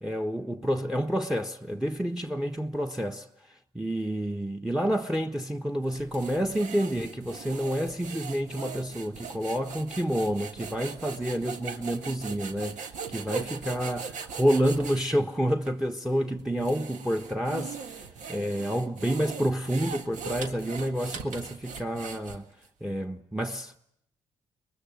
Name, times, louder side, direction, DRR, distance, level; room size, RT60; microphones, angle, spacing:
voice 1, 0.0-3.3 3.7-22.5 22.8-23.8, equal, 5° right, 1.3 m, -29 dB
sound 1, 5.9-15.0 15.6-15.8 16.4-22.7, right 6 dB, 70° right, 1.7 m, -40 dB
23.5 x 21.0 x 9.5 m
supercardioid pair, 55°, 13 cm